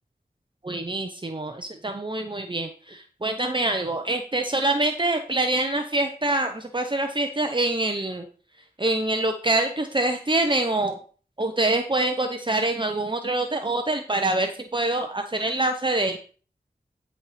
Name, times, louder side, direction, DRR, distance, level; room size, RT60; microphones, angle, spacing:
voice 1, 0.6-8.3 8.8-11.0 11.4-16.2, right 2 dB, 30° right, 5 dB, 0.9 m, -25 dB
11.0 x 4.4 x 5.1 m, 0.40 s
cardioid pair, 40°, 17 cm